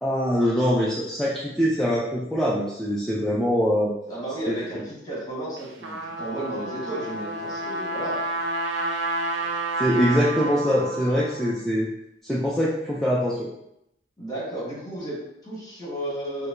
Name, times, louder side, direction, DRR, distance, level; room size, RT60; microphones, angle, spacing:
voice 1, 0.0-3.9 4.5-4.6 9.7-11.9 12.2-13.5, equal, 5° left, -6 dB, 0.4 m, -23 dB
voice 2, 4.1-8.4 14.2-16.5, right 1 dB, 25° left, -6 dB, 1.3 m, -33 dB
Trumpet, 5.6-11.5, right 2 dB, 80° right, 0.6 m, -30 dB
4.6 x 2.1 x 2.5 m, 0.84 s
head